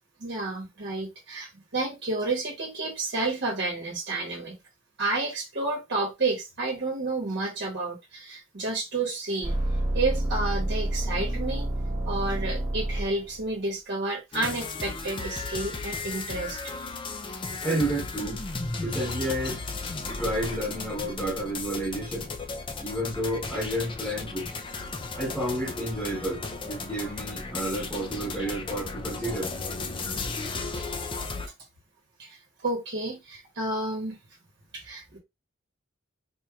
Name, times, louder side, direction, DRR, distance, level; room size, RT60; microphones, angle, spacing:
voice 1, 0.2-4.6 5.0-9.6 9.9-11.7 12.0-16.6 32.2-32.4 32.6-34.2 34.7-35.2, right 2 dB, 60° right, 1.1 m, -30 dB
sound 1, 9.4-13.5 19.0-20.5 20.8-20.9 27.0-27.1, right 1 dB, 20° right, 0.9 m, -29 dB
sound 2, 14.3-31.5, left 3 dB, 25° left, 0.5 m, -35 dB
voice 2, 17.6-18.4 18.8-19.6 20.2-22.3 22.8-24.5 25.2-29.5, right 1 dB, ahead, 1.1 m, -30 dB
4.3 x 3.0 x 2.4 m
head